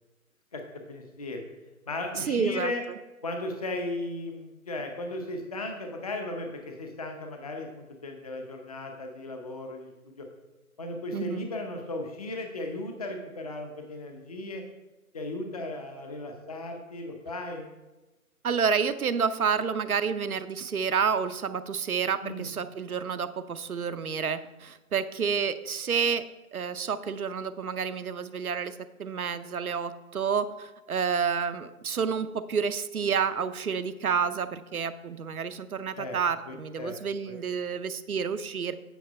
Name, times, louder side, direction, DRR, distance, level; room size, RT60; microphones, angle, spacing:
voice 1, 0.9-1.4 1.9-2.8 3.2-9.9 10.2-10.3 10.8-14.6 15.1-17.7 22.2-22.5 36.0-36.2 36.5-37.0 37.3-37.4, left 2 dB, 25° left, 4 dB, 0.7 m, -36 dB
voice 2, 2.1-2.7 11.1-11.5 18.4-26.2 26.5-38.7, right 6 dB, 75° right, 12 dB, 0.7 m, -29 dB
9.2 x 5.2 x 5.4 m, 1.1 s
figure-of-eight pair, 150°, 44 cm